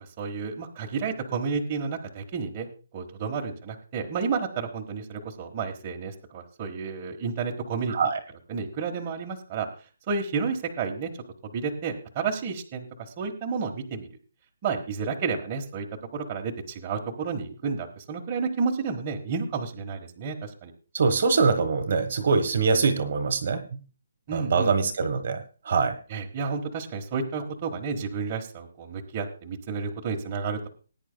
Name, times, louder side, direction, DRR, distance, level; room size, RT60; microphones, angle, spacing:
voice 1, 0.2-2.7 2.9-7.9 8.5-9.7 10.1-11.1 11.5-12.8 13.2-14.1 14.6-15.9 16.1-20.7 24.3-24.7 26.1-30.7, right 5 dB, 20° right, 0 dB, 1.3 m, -31 dB
voice 2, 7.9-8.2 20.9-23.6 24.3-26.0, right 4 dB, 40° right, 8 dB, 1.3 m, -23 dB
19.5 x 10.0 x 2.2 m, 0.36 s
hypercardioid pair, 175°, 0 cm